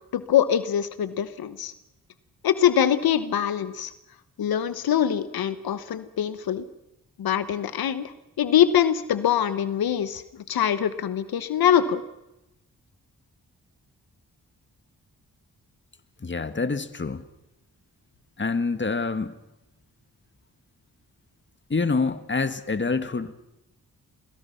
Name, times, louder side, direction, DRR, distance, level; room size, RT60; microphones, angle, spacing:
voice 1, 0.1-1.7 2.4-3.9 4.4-6.6 7.2-12.0, left 9 dB, 90° left, 13 dB, 1.2 m, -23 dB
voice 2, 16.2-17.2 18.4-19.3 21.7-23.3, left 4 dB, 30° left, 11 dB, 1.8 m, -26 dB
29.0 x 22.0 x 5.8 m, 0.91 s
cardioid pair, 70°, 35 cm